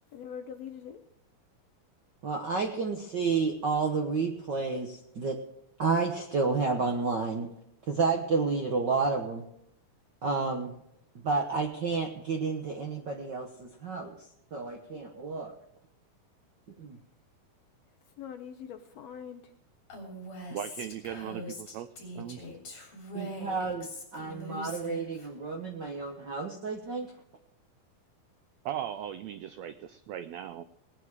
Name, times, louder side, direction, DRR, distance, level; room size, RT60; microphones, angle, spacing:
voice 1, 0.1-1.0 18.2-19.4, left 8 dB, 70° left, 7 dB, 1.6 m, -42 dB
voice 2, 2.2-5.4 5.8-7.5 7.9-9.4 10.2-10.7 11.2-14.1 14.5-15.5 16.8-17.0 23.1-27.1, right 4 dB, 65° right, 3 dB, 1.0 m, -30 dB
Female speech woman speaking, 19.9-25.3, left 1 dB, 40° left, 4.2 m, -42 dB
voice 3, 20.5-21.9 22.1-22.4 28.6-30.6, right 10 dB, 85° right, 11 dB, 1.5 m, -38 dB
19.0 x 9.6 x 4.8 m, 0.77 s
omnidirectional pair, 3.8 m